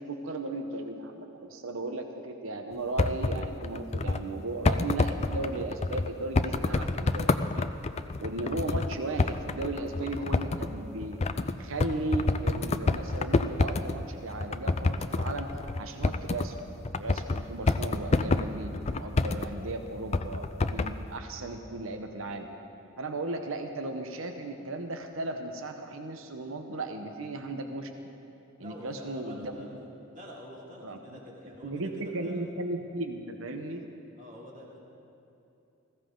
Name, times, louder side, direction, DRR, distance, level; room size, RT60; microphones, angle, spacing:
voice 1, 0.0-7.7 8.2-11.2 11.6-15.5 15.8-16.6 17.0-22.5 23.0-27.9 28.6-29.8 30.8-31.2 31.6-33.8, right 2 dB, 70° right, 6 dB, 0.9 m, -36 dB
sound 1, 2.7-4.3 4.6-14.0 14.3-16.6 16.9-19.5 20.1-21.0, left 3 dB, 30° left, 0.4 m, -28 dB
voice 2, 28.6-29.7 30.1-32.4 34.2-34.8, equal, 35° right, -4 dB, 2.9 m, -47 dB
20.0 x 15.5 x 3.9 m, 2.8 s
head